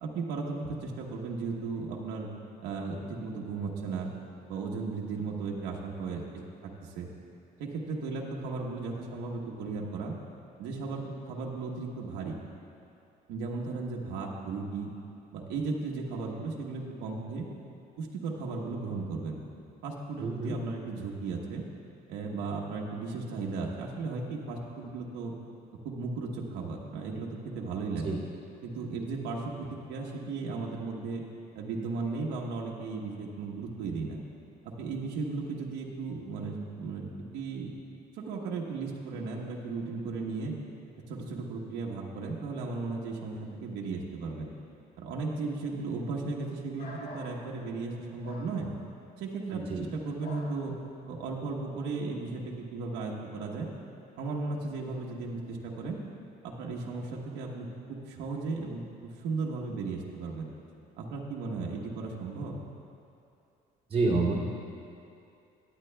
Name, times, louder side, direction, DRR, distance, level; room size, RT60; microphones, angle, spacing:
voice 1, 0.0-2.3 2.6-4.1 4.5-6.2 6.6-7.1 7.6-10.1 10.6-12.4 13.3-14.9 15.3-17.4 18.0-19.4 19.8-21.6 22.1-25.3 25.8-27.3 27.5-28.2 28.6-31.2 31.5-34.2 34.6-37.7 38.1-40.5 41.1-44.5 45.0-48.7 49.2-50.7 51.1-53.7 54.2-56.0 56.4-60.5 61.0-62.6, right 4 dB, 85° right, -2 dB, 1.1 m, -35 dB
voice 2, 20.2-20.6 28.0-28.2 49.5-49.8 63.9-64.4, right 3 dB, 35° right, -6 dB, 2.5 m, -28 dB
sound 1, 46.8-47.3 48.2-48.5 50.2-50.5, left 1 dB, 65° left, 2.3 m, -44 dB
17.0 x 10.5 x 2.2 m, 2.6 s
cardioid pair, 110°, 17 cm